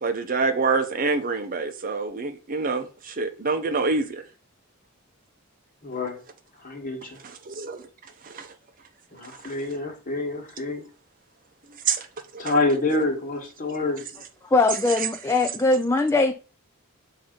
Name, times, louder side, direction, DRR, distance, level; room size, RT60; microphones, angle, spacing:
voice 1, 0.0-4.2 7.5-7.8 8.3-8.5 11.9-12.0, right 4 dB, 40° right, 0.7 m, -26 dB
voice 2, 5.8-6.2 6.6-7.2 9.1-10.9 12.4-14.0, left 2 dB, 40° left, 1.4 m, -27 dB
voice 3, 14.5-16.3, left 2 dB, 15° left, 0.4 m, -21 dB
7.1 x 2.7 x 5.1 m
head